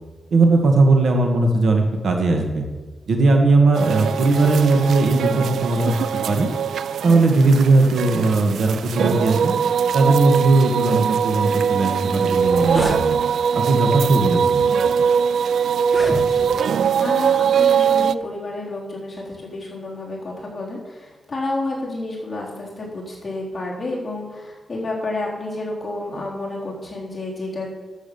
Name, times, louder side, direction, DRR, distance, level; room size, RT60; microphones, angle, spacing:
voice 1, 0.3-2.6 3.1-5.9 6.2-6.5 7.0-9.5 9.9-13.2 13.5-14.7, right 3 dB, 60° right, 3 dB, 1.6 m, -18 dB
sound 1, 3.7-18.1, right 7 dB, 80° right, 0.3 m, -21 dB
sound 2, 12.3-13.0 13.9-14.1 14.8-14.9 15.8-16.7, left 1 dB, 5° right, 1.5 m, -29 dB
voice 2, 16.1-27.9, left 2 dB, 25° left, -5 dB, 4.0 m, -30 dB
12.0 x 7.6 x 7.0 m, 1.3 s
wide cardioid pair, 165°, 0 cm